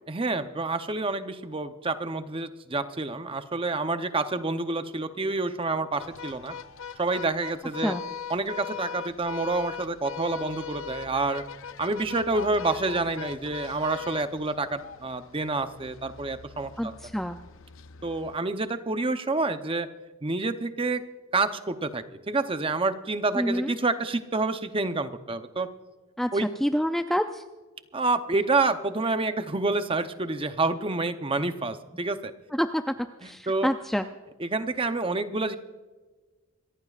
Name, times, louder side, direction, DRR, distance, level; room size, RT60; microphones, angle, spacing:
voice 1, 0.1-6.5 7.0-7.9 8.3-11.4 11.8-16.9 18.0-19.9 20.2-21.0 21.3-25.7 26.3-26.5 27.9-32.3 33.5-33.7 34.4-35.6, right 3 dB, 25° right, 9 dB, 0.8 m, -28 dB
sound 1, 6.0-18.4, left 7 dB, 60° left, 0.6 m, -41 dB
voice 2, 16.8-17.4 23.3-23.7 26.2-26.3 26.6-27.4 32.5-32.9 33.2-34.1, equal, ahead, 6 dB, 0.4 m, -27 dB
27.0 x 14.5 x 2.5 m, 1.3 s
head